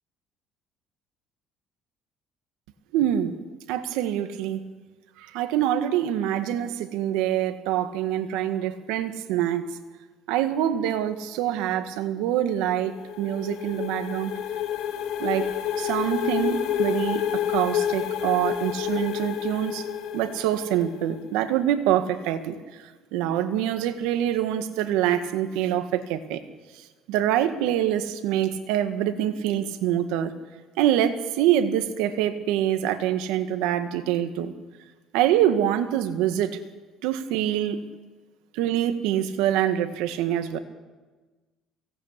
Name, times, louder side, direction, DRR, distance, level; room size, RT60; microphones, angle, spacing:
voice 1, 2.9-3.4 3.7-4.6 5.2-9.7 10.3-14.3 15.2-15.5 15.8-19.9 20.1-22.6 23.1-26.4 27.1-30.3 30.8-34.5 35.1-36.6 37.0-37.8 38.5-40.6, right 11 dB, 90° right, 9 dB, 1.8 m, -25 dB
sound 1, 12.5-21.2, left 10 dB, 75° left, 3.0 m, -29 dB
23.5 x 18.5 x 8.3 m, 1.3 s
cardioid pair, 100°, 0 cm